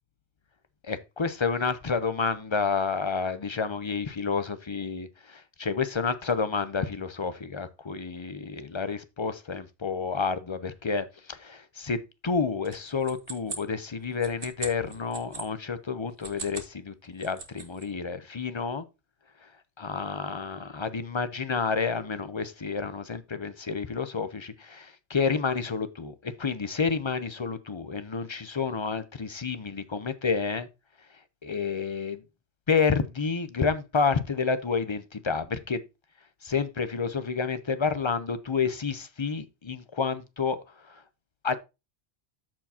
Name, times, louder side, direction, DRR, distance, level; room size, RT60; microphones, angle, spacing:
voice 1, 0.8-18.9 19.8-30.7 31.4-32.2 32.7-35.8 36.4-41.0 41.4-41.6, left 5 dB, 30° left, 0.6 m, -29 dB
sound 1, 12.6-15.5 16.1-16.7 17.0-17.9, right 4 dB, 55° right, 1.4 m, -40 dB
13.5 x 4.5 x 2.8 m
omnidirectional pair, 1.1 m